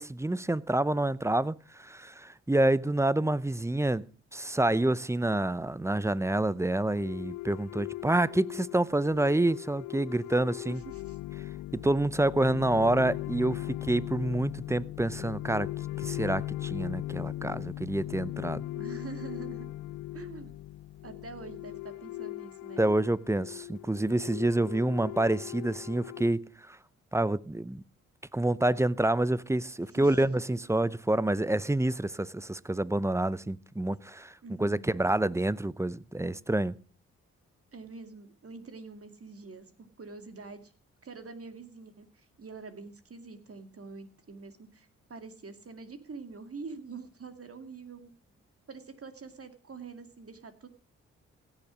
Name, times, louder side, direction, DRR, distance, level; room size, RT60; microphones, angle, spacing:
voice 1, 0.0-4.1 4.3-10.8 11.7-15.7 16.0-18.6 22.8-26.8 27.1-27.8 28.3-36.8, right 1 dB, 10° right, 0.6 m, -28 dB
sound 1, 7.0-26.3, left 16 dB, 80° left, 0.6 m, -39 dB
voice 2, 10.7-11.2 18.7-19.7 20.1-20.5 21.0-22.9 29.8-30.2 34.4-34.9 37.7-40.7 41.0-48.1 48.7-50.7, right 4 dB, 45° right, 2.3 m, -45 dB
16.5 x 7.1 x 6.2 m
hypercardioid pair, 45°, 33 cm